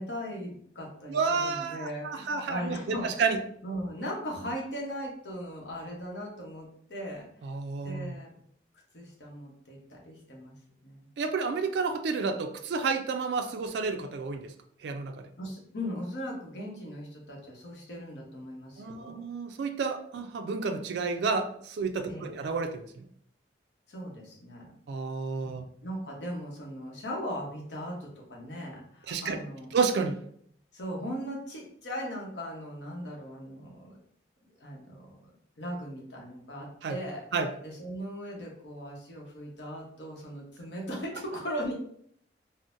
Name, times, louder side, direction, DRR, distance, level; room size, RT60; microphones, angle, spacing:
voice 1, 0.0-3.3 3.6-7.3 7.8-8.3 8.9-10.5 10.8-11.1 15.4-19.2 22.1-22.3 23.9-24.6 25.8-29.7 30.7-34.0 34.6-35.3 35.6-37.2 37.6-41.7, equal, 75° left, -2 dB, 0.9 m, -38 dB
voice 2, 1.1-3.4 7.4-8.1 11.2-14.5 14.8-15.1 18.8-23.1 24.9-25.6 29.1-29.4 29.7-30.2 36.8-37.0 37.3-37.5, right 4 dB, 70° right, 6 dB, 0.3 m, -30 dB
3.7 x 2.0 x 2.5 m, 0.65 s
head